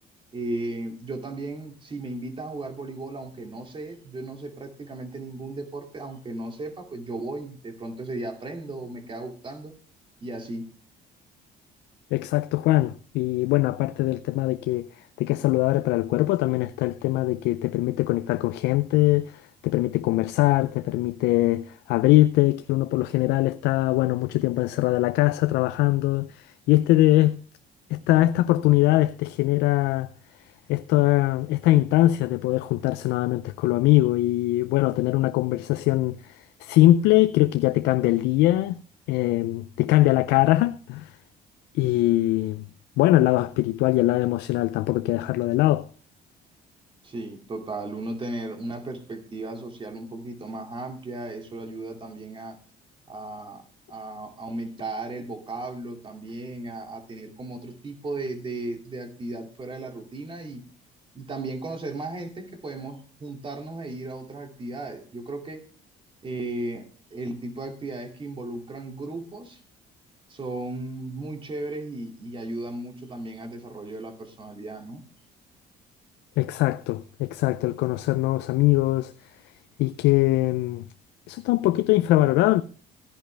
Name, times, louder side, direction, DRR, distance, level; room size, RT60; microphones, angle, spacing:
voice 1, 0.3-9.7 10.2-10.7 41.9-42.2 47.0-52.6 53.1-60.6 61.1-65.6 66.2-69.6 70.3-75.0, right 2 dB, 30° right, 2.4 m, -35 dB
voice 2, 12.1-14.9 15.2-27.4 27.9-30.1 30.7-38.8 39.1-41.1 41.7-42.6 43.0-45.9 76.4-79.1 79.8-80.8 81.3-82.6, left 16 dB, 85° left, 0.5 m, -22 dB
14.0 x 10.5 x 3.4 m
cardioid pair, 110°, 17 cm